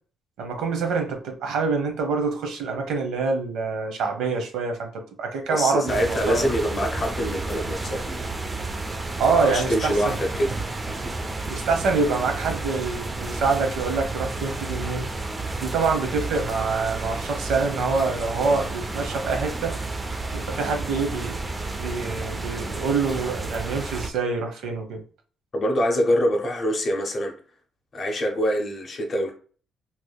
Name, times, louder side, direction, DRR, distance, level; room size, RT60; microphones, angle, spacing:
voice 1, 0.4-4.9 5.2-6.5 9.2-10.2 11.5-15.1 15.6-19.7 20.3-21.4 21.8-25.0, right 4 dB, 80° right, 4 dB, 0.9 m, -26 dB
voice 2, 5.5-8.2 9.4-10.5 25.5-27.3 27.9-29.3, equal, 30° left, 1 dB, 0.6 m, -24 dB
sound 1, 5.9-24.1, right 2 dB, 15° right, 0.3 m, -31 dB
3.3 x 3.0 x 2.2 m, 0.41 s
cardioid pair, 175°, 0 cm